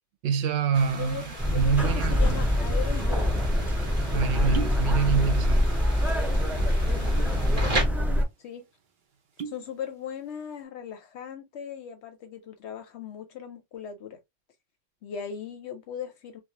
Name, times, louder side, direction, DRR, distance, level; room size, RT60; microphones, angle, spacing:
voice 1, 0.2-2.3 4.1-5.7, right 6 dB, 80° right, 0.9 m, -26 dB
sound 1, 0.7-7.8, right 1 dB, 30° right, 1.0 m, -37 dB
voice 2, 0.9-3.4 4.1-5.0 6.9-7.2 8.4-8.7 9.5-14.2 15.0-16.4, left 8 dB, 70° left, 0.8 m, -39 dB
sound 2, 1.4-8.2, equal, ahead, 0.4 m, -24 dB
sound 3, 4.5-4.9 5.1-5.8 6.1-6.3 7.0-7.4 7.9-8.0 8.3-8.5 9.1-9.7 10.1-10.5, right 6 dB, 50° right, 0.6 m, -37 dB
2.4 x 2.2 x 2.7 m
omnidirectional pair, 1.3 m